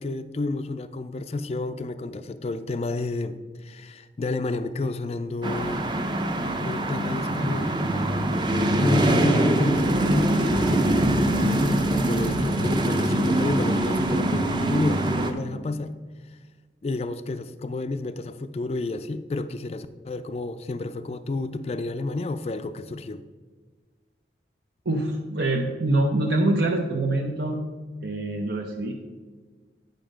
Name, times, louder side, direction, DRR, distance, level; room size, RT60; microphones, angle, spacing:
voice 1, 0.0-5.8 6.6-7.7 8.8-9.9 10.1-15.9 16.8-23.2, left 2 dB, 35° left, 11 dB, 0.3 m, -31 dB
sound 1, 5.4-15.3, right 1 dB, 25° right, 0.6 m, -23 dB
voice 2, 24.9-27.6 28.0-28.9, right 2 dB, 65° right, 1 dB, 0.7 m, -25 dB
9.3 x 5.3 x 5.0 m, 1.4 s
head